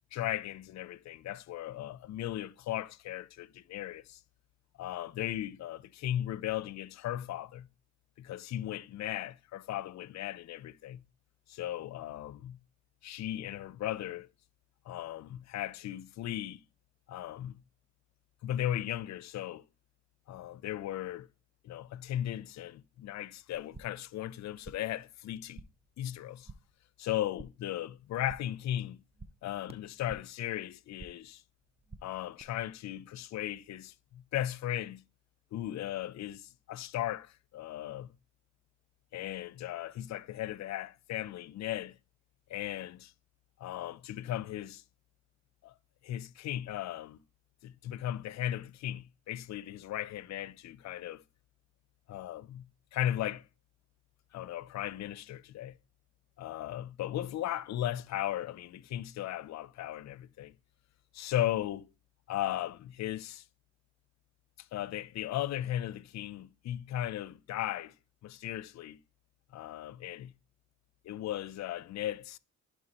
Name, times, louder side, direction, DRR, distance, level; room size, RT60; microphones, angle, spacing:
voice 1, 0.1-4.2 4.8-7.7 8.2-11.0 11.5-12.6 13.0-14.3 14.9-16.6 17.1-17.6 18.4-19.6 20.3-21.3 21.6-25.6 26.0-26.5 27.0-29.0 29.4-31.4 32.0-35.0 35.5-38.1 39.1-42.0 42.5-43.1 43.6-44.8 45.6-45.7 46.0-47.2 47.6-51.2 52.1-52.6 52.9-53.5 54.3-55.8 56.4-60.5 61.1-61.9 62.3-63.4 64.6-67.9 68.2-69.0 69.5-70.3 71.0-72.4, left 12 dB, 65° left, 0.5 m, -37 dB
sound 1, 23.5-24.1 24.4-25.0 25.3-25.9 26.2-26.8 27.1-27.7 28.0-28.6 28.9-30.4 30.7-31.4 31.6-32.4, right 3 dB, 20° right, 0.6 m, -52 dB
11.0 x 4.5 x 2.9 m
cardioid pair, 90°, 30 cm